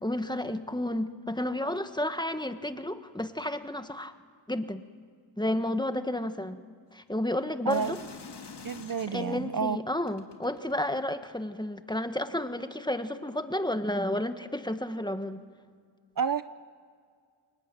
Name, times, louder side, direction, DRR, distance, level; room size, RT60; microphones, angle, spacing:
voice 1, 0.0-4.2 4.5-4.8 5.4-6.6 6.9-8.0 9.1-15.4, left 1 dB, 10° left, 9 dB, 1.5 m, -31 dB
sound 1, 7.7-9.4 10.1-11.5 12.3-12.4, left 5 dB, 60° left, 2.4 m, -46 dB
voice 2, 7.7-8.0 8.6-9.8 16.2-16.4, right 6 dB, 45° right, 13 dB, 0.7 m, -29 dB
28.5 x 22.5 x 9.2 m, 2.1 s
cardioid pair, 60°, 46 cm